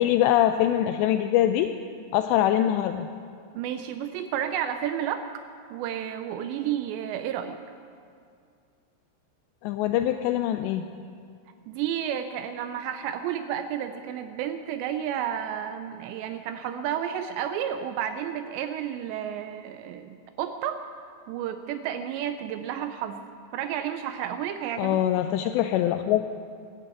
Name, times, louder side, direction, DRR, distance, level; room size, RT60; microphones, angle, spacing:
voice 1, 0.0-1.7 2.1-3.1 9.6-10.9 24.8-26.2, left 12 dB, 85° left, 8 dB, 2.5 m, -23 dB
voice 2, 3.5-5.2 5.7-7.6 11.7-20.8 21.3-23.2 23.5-25.0, right 9 dB, 80° right, 8 dB, 2.6 m, -31 dB
16.5 x 9.9 x 8.0 m, 2.4 s
omnidirectional pair, 5.5 m